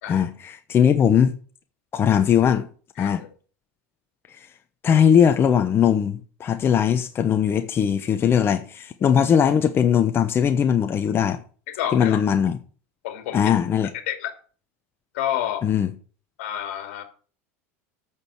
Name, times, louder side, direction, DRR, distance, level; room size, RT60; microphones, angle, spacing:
voice 1, 0.1-1.3 1.9-2.7 3.0-3.2 4.4-4.5 4.8-11.4 11.9-12.5 13.3-13.9 15.6-15.9, left 8 dB, 30° left, 1.0 m, -20 dB
voice 2, 3.0-3.3 9.0-9.2 11.7-12.2 13.0-13.5 14.1-14.3 15.1-15.6 16.4-17.0, left 11 dB, 75° left, 2.5 m, -29 dB
8.8 x 6.4 x 8.3 m
supercardioid pair, 105°, 7 cm